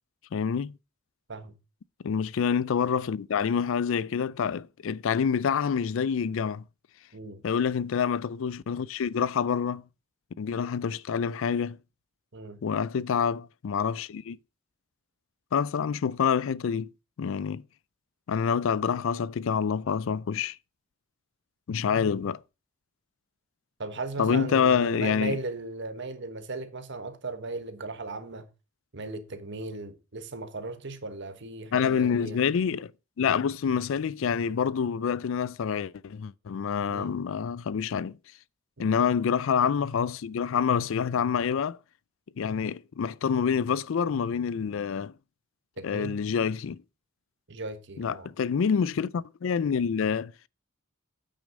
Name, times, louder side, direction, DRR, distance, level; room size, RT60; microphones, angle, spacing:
voice 1, 0.3-0.7 2.0-6.6 7.4-9.8 10.4-11.8 12.6-14.4 15.5-16.9 17.2-17.6 18.3-20.6 21.7-22.4 24.2-25.4 31.7-32.9 33.2-38.2 38.8-41.8 42.4-45.1 45.8-46.8 48.0-50.3, left 7 dB, 70° left, 0.4 m, -27 dB
voice 2, 7.1-7.4 12.3-12.6 23.8-28.5 28.9-32.4 36.9-37.2 38.8-39.0 45.8-46.2 47.5-48.3, right 3 dB, 60° right, 1.3 m, -37 dB
8.7 x 6.4 x 5.1 m
head